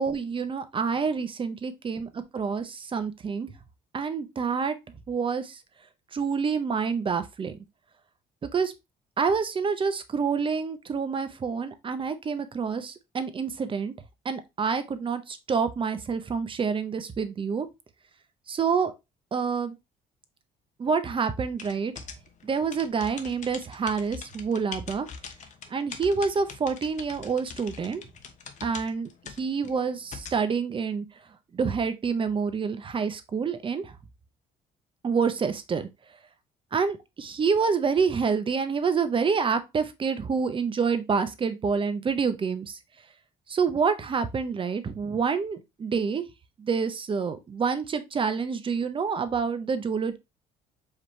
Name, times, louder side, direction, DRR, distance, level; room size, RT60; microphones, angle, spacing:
voice 1, 0.0-3.5 3.9-4.7 5.1-5.6 6.1-7.5 8.4-8.7 9.2-13.9 14.2-17.7 18.5-18.9 19.3-19.8 20.8-21.9 22.4-25.1 25.7-28.0 28.6-31.1 31.5-33.9 35.0-35.9 36.7-42.8 43.5-46.2 46.6-50.2, right 5 dB, 30° right, 0.6 m, -27 dB
sound 1, 21.6-30.4, left 6 dB, 45° left, 0.8 m, -43 dB
4.9 x 2.9 x 3.1 m
cardioid pair, 110°, 17 cm